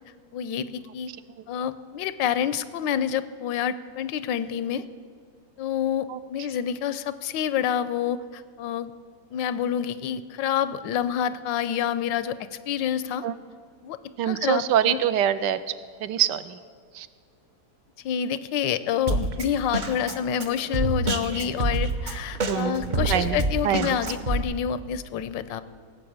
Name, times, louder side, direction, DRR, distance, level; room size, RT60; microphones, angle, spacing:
voice 1, 0.3-1.1 1.5-4.8 5.6-8.9 9.3-12.4 12.7-13.2 13.8-14.0 14.2-15.0 18.0-25.6, left 9 dB, 90° left, 14 dB, 1.3 m, -28 dB
voice 2, 14.2-15.7 16.0-16.6 16.9-17.1 22.5-22.8 23.1-23.4 23.6-24.0, right 10 dB, 80° right, 13 dB, 1.2 m, -24 dB
Drum kit, 19.1-24.4, right 2 dB, 50° right, 0.5 m, -27 dB
17.5 x 6.8 x 8.6 m, 2.2 s
omnidirectional pair, 2.0 m